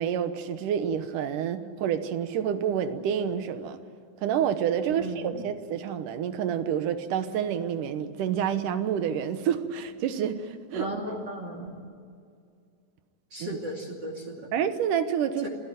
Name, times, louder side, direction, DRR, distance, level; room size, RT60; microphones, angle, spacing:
voice 1, 0.0-3.8 4.2-10.9 13.4-13.6 14.5-15.5, right 8 dB, 75° right, 10 dB, 2.6 m, -28 dB
voice 2, 4.9-5.5 10.7-11.7 13.3-14.4 15.4-15.5, right 1 dB, 35° right, 1 dB, 3.0 m, -35 dB
26.5 x 15.5 x 9.1 m, 2.3 s
omnidirectional pair, 3.8 m